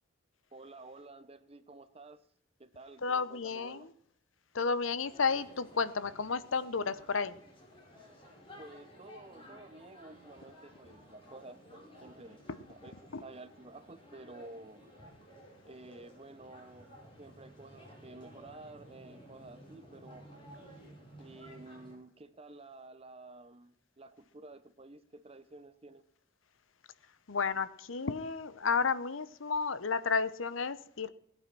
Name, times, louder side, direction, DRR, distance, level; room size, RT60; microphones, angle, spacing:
voice 1, 0.5-2.2 2.6-3.9 8.6-12.4 12.7-14.9 15.6-20.3 21.2-26.0, right 2 dB, 30° right, 12 dB, 0.9 m, -51 dB
voice 2, 3.0-3.9 4.5-7.3 13.1-13.2 27.3-31.1, left 5 dB, 80° left, 15 dB, 0.9 m, -32 dB
sound 1, 5.0-22.0, equal, 25° left, 4.9 m, -55 dB
18.0 x 8.8 x 6.2 m, 0.68 s
head